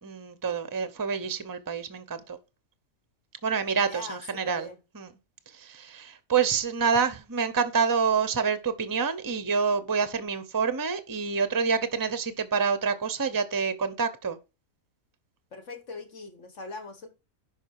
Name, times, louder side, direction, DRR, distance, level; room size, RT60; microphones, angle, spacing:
voice 1, 0.0-2.4 3.4-4.7 4.9-5.1 5.5-14.4, right 5 dB, 20° right, 0.8 m, -27 dB
voice 2, 3.7-4.8 15.5-17.1, left 3 dB, 60° left, 1.8 m, -41 dB
11.0 x 5.1 x 4.8 m
omnidirectional pair, 1.4 m